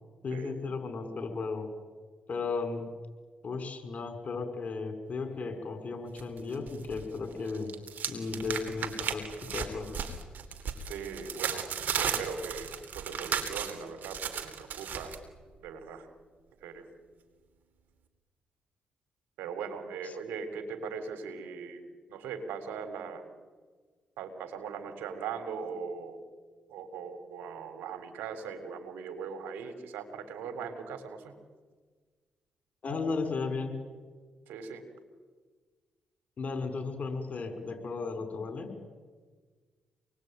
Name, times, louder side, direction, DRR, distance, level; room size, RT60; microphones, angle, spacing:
voice 1, 0.2-1.7 2.3-2.8 3.4-7.7 8.1-10.1 20.0-20.1 32.8-33.7 36.4-38.7, left 4 dB, 50° left, 7 dB, 6.0 m, -35 dB
sound 1, 6.2-7.0 7.3-15.2, right 7 dB, 65° right, 3.5 m, -35 dB
voice 2, 10.8-15.1 15.6-16.1 16.6-16.9 19.4-21.8 22.1-23.2 24.2-26.2 26.7-31.3 34.5-34.8, right 6 dB, 85° right, 8 dB, 3.8 m, -40 dB
27.0 x 21.0 x 9.3 m, 1.5 s
supercardioid pair, 55°, 3 cm